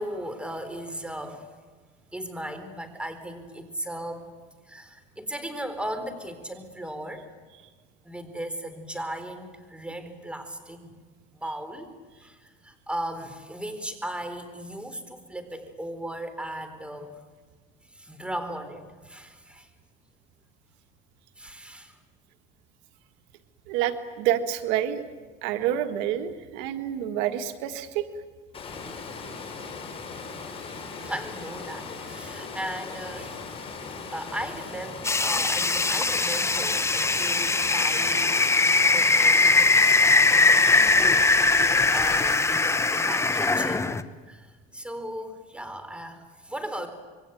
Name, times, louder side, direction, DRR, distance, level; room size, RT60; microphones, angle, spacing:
voice 1, 0.0-1.5 2.1-4.3 4.7-7.3 8.0-11.0 11.3-11.9 12.2-17.2 17.9-19.7 21.4-22.0 30.9-33.5 34.1-38.6 38.9-40.0 40.3-44.0 44.3-46.9, right 1 dB, 5° right, 9 dB, 4.1 m, -37 dB
voice 2, 23.7-25.0 25.4-28.0, right 11 dB, 90° right, 8 dB, 1.7 m, -28 dB
Water, 28.5-42.3, left 4 dB, 30° left, 5.9 m, -39 dB
sound 1, 35.0-44.0, left 3 dB, 15° left, 1.1 m, -21 dB
27.0 x 22.5 x 9.2 m, 1.4 s
cardioid pair, 105°, 18 cm